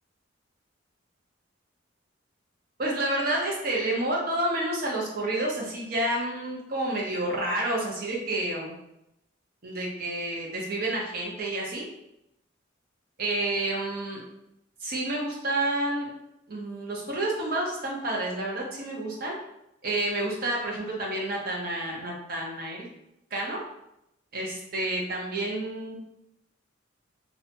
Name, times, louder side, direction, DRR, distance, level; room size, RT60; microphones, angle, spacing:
voice 1, 2.8-8.7 9.6-11.8 13.2-14.2 14.8-16.1 16.5-19.3 19.8-22.9 23.3-23.6 24.3-26.0, right 1 dB, 50° right, -2 dB, 0.7 m, -29 dB
2.7 x 2.1 x 2.7 m, 0.83 s
head